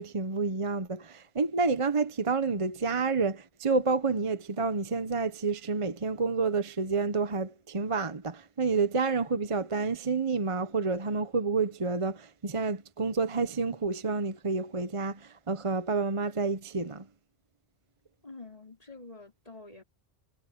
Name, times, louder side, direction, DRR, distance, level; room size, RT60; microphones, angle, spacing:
voice 1, 0.0-17.0, right 4 dB, 30° right, 0.9 m, -29 dB
voice 2, 18.2-19.8, left 3 dB, 30° left, 5.2 m, -47 dB
omnidirectional pair, 1.2 m